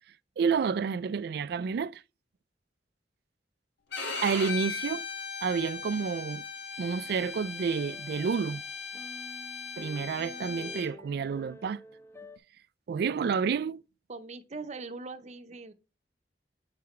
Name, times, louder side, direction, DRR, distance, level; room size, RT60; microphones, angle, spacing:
voice 1, 0.4-2.0 4.2-5.1 5.4-6.4 6.8-8.6 9.8-11.8 12.9-13.8, right 6 dB, 65° right, 0.3 m, -29 dB
Bowed string instrument, 3.9-10.9, left 5 dB, 80° left, 1.6 m, -38 dB
sound 1, 6.9-12.4, left 2 dB, 15° left, 0.7 m, -50 dB
voice 2, 14.1-15.7, right 3 dB, 40° right, 0.7 m, -41 dB
9.5 x 3.9 x 4.2 m
head